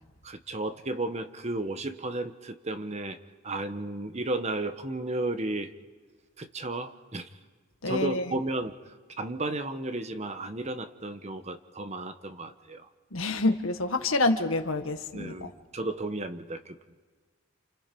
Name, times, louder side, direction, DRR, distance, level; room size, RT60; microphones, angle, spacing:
voice 1, 0.2-3.2 3.4-5.7 6.4-7.3 7.9-8.8 9.2-12.9 15.1-17.0, right 2 dB, 35° right, 9 dB, 1.2 m, -33 dB
voice 2, 7.8-8.3 13.1-15.5, left 2 dB, 85° left, 6 dB, 1.8 m, -27 dB
29.5 x 29.0 x 5.4 m, 1.4 s
head